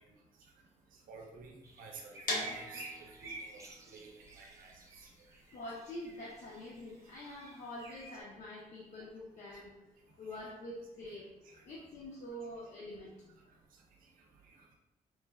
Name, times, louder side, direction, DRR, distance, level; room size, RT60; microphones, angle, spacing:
voice 1, 1.1-2.8 3.2-4.8, right 4 dB, 80° right, 2 dB, 0.5 m, -52 dB
sound 1, 1.6-8.2, right 2 dB, 20° right, 0.4 m, -51 dB
sound 2, 2.3-8.1, left 2 dB, 85° left, 0.8 m, -42 dB
voice 2, 5.5-9.8 10.2-11.3 11.6-13.5, left 1 dB, 55° left, -4 dB, 0.5 m, -46 dB
3.1 x 2.2 x 2.3 m, 0.97 s
cardioid pair, 95°, 14 cm